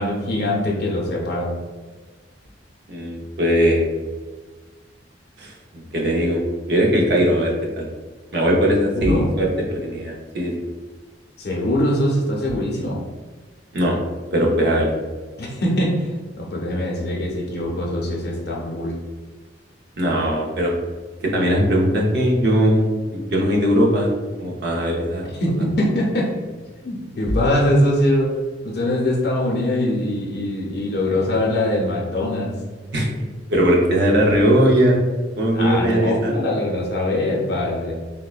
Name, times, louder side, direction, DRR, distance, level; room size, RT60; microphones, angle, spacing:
voice 1, 0.0-1.5 8.9-9.3 11.4-13.0 15.4-19.0 25.4-26.6 26.8-28.4 28.6-32.5 35.5-37.9, left 1 dB, 60° left, -2 dB, 0.6 m, -22 dB
voice 2, 2.9-3.9 5.4-7.9 8.3-10.5 13.7-14.0 14.3-14.9 20.0-20.7 21.2-25.3 32.9-33.1 33.5-35.0 35.4-36.3, equal, 65° right, -2 dB, 0.6 m, -19 dB
3.5 x 2.1 x 2.3 m, 1.3 s
head